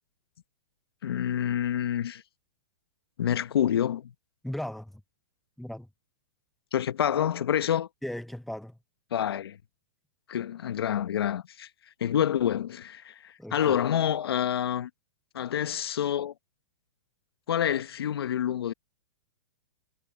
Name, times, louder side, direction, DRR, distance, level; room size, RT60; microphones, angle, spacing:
voice 1, 1.0-2.2 3.2-4.1 6.7-7.9 9.1-9.6 10.3-11.7 12.0-14.9 15.3-16.3 17.5-18.7, left 10 dB, 80° left, 1.1 m, -27 dB
voice 2, 4.4-5.0 5.6-5.9 8.0-8.8 13.4-13.8, left 1 dB, ahead, 0.6 m, -37 dB
hypercardioid pair, 135°, 13 cm